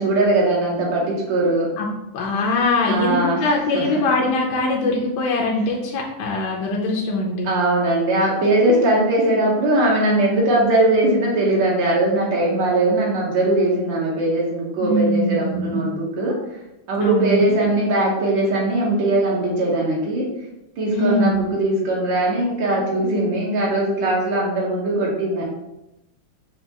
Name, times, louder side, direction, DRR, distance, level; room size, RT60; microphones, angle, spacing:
voice 1, 0.0-1.7 2.8-3.5 3.7-3.9 7.4-16.4 16.9-20.3 20.8-25.4, right 1 dB, 70° right, -3 dB, 1.5 m, -20 dB
voice 2, 1.8-7.5 14.8-15.9 17.0-17.4 20.9-21.5, left 2 dB, 70° left, -2 dB, 1.1 m, -22 dB
5.7 x 2.3 x 2.7 m, 0.90 s
omnidirectional pair, 2.2 m